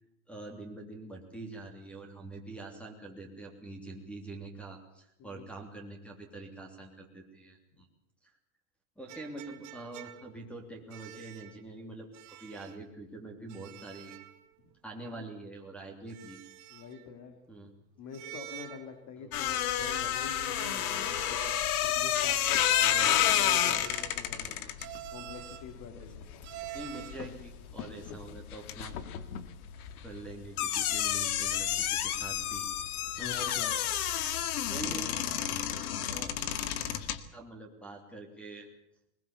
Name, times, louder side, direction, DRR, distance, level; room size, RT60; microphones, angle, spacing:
voice 1, 0.3-7.9 9.0-12.1 12.4-14.2 14.8-16.4 17.5-17.7 19.2-19.4 21.2-21.4 22.8-23.2 24.4-24.8 26.0-26.1 26.7-28.9 30.0-32.7 33.2-33.3 34.7-35.4 36.1-36.3 37.3-38.7, right 2 dB, 5° left, 5 dB, 3.2 m, -45 dB
sound 1, 9.1-10.4 10.9-11.6 12.1-12.8 13.5-14.4 14.7-14.8 16.1-17.0 18.1-19.0 19.7-21.8 22.6-24.2 24.8-25.7 26.4-27.3, right 15 dB, 40° right, 2.1 m, -46 dB
voice 2, 16.7-17.4 18.0-21.5 22.0-22.6 23.0-24.5 25.1-26.2 33.2-33.9, left 6 dB, 40° left, 6 dB, 2.9 m, -45 dB
sound 2, 19.3-27.4 27.7-37.2, left 11 dB, 75° left, 2.1 m, -30 dB
21.0 x 20.5 x 7.2 m, 0.77 s
supercardioid pair, 150°, 45 cm